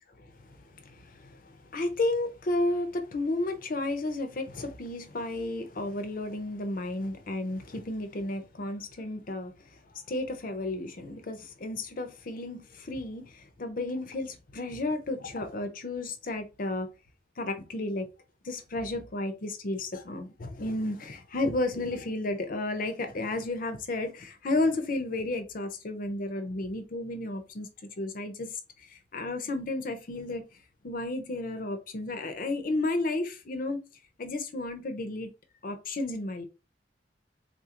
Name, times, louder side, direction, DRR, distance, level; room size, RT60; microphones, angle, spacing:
voice 1, 0.7-9.5 9.9-16.9 17.4-18.1 18.4-27.7 28.0-28.6 28.9-30.4 30.8-33.8 34.2-35.3 35.6-36.4, left 2 dB, 50° left, 0.6 m, -32 dB
3.8 x 2.5 x 2.8 m
head